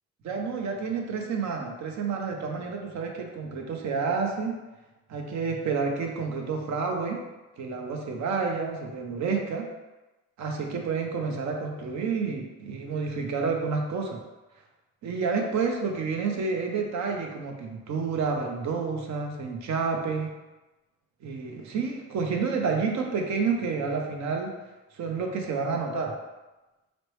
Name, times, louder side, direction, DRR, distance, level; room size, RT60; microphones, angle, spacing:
voice 1, 0.2-4.5 5.1-7.2 7.6-9.6 10.4-14.2 15.0-20.3 21.2-24.5 25.0-26.1, right 5 dB, 65° right, 2 dB, 0.7 m, -29 dB
4.3 x 2.1 x 3.1 m, 1.1 s
cardioid pair, 90°, 30 cm